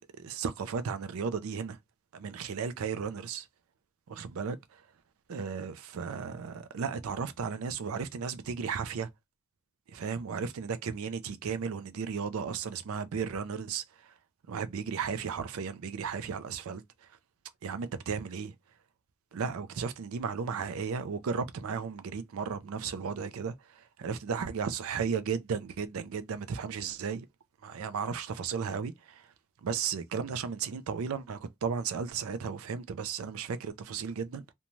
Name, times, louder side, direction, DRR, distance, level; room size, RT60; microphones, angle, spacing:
voice 1, 0.0-1.8 2.1-3.5 4.1-4.8 5.3-9.1 9.9-14.1 14.5-17.1 17.6-18.5 19.3-27.3 27.6-29.3 29.6-34.5, right 6 dB, 70° right, 0.4 m, -35 dB
2.6 x 2.2 x 3.0 m
head